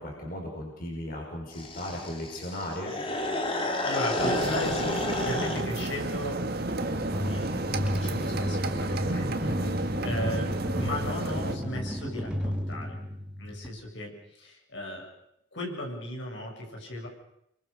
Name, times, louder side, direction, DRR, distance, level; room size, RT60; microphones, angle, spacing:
voice 1, 0.0-2.9, left 1 dB, 50° left, 0 dB, 6.3 m, -36 dB
sound 1, 1.5-5.7, left 1 dB, 30° left, 3.0 m, -31 dB
voice 2, 3.8-13.0 13.4-15.1 15.5-17.1, left 1 dB, 70° left, 0 dB, 7.6 m, -37 dB
Barcelona Cathedral del Mar indoor ambiance, 4.2-11.6, right 2 dB, 55° right, 2.0 m, -32 dB
sound 2, 6.8-13.7, equal, 5° right, 2.9 m, -33 dB
29.0 x 24.5 x 6.8 m, 0.78 s
head